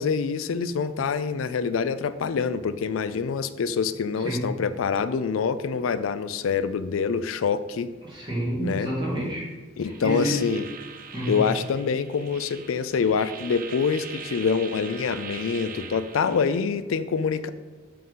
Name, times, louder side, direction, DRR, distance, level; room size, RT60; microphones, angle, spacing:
voice 1, 0.0-7.9 8.6-8.9 9.8-10.6 11.3-17.5, left 5 dB, 90° left, 13 dB, 0.4 m, -26 dB
voice 2, 8.0-9.5 9.8-10.5 11.1-11.4, equal, 25° right, -5 dB, 2.5 m, -28 dB
sound 1, 9.9-16.7, right 6 dB, 45° right, 0.6 m, -41 dB
7.7 x 3.8 x 5.5 m, 1.3 s
head